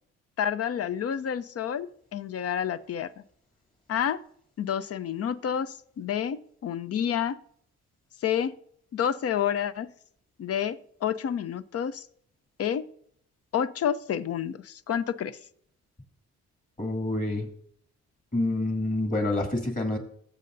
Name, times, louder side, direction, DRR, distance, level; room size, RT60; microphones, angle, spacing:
voice 1, 0.4-3.1 3.9-4.2 4.6-7.4 8.2-8.5 8.9-9.9 10.4-12.1 12.6-12.8 13.5-15.4, left 9 dB, 50° left, 15 dB, 0.7 m, -29 dB
voice 2, 16.8-17.5 18.3-20.0, left 2 dB, 25° left, 3 dB, 2.7 m, -27 dB
20.5 x 7.7 x 2.7 m, 0.66 s
cardioid pair, 90°, 30 cm